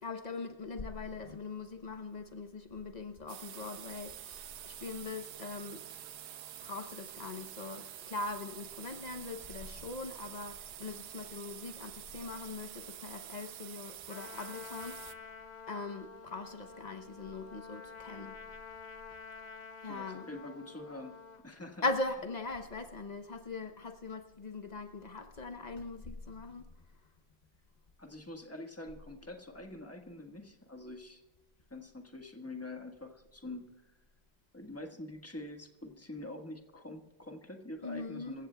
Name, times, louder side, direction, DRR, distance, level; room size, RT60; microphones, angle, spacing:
voice 1, 0.0-5.8 6.6-15.4 15.7-18.4 19.8-20.3 21.8-26.7 37.8-38.4, left 3 dB, 85° left, 6 dB, 0.3 m, -41 dB
sound 1, 3.3-15.1, right 11 dB, 65° right, 1.2 m, -48 dB
Trumpet, 14.1-21.4, left 5 dB, 40° left, 0.6 m, -49 dB
voice 2, 19.9-21.1 21.4-21.8 28.0-31.2 31.7-33.9 34.5-38.5, left 1 dB, 10° left, 3 dB, 1.1 m, -45 dB
27.0 x 15.5 x 2.3 m, 1.1 s
omnidirectional pair, 2.1 m